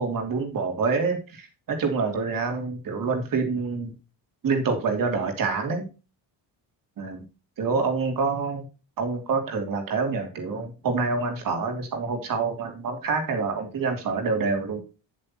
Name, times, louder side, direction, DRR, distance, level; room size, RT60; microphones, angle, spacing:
voice 1, 0.0-3.9 4.4-5.9 7.0-7.2 7.6-8.6 9.0-14.8, right 4 dB, 45° right, 5 dB, 3.0 m, -27 dB
9.8 x 8.7 x 2.9 m, 0.31 s
cardioid pair, 170°, 45 cm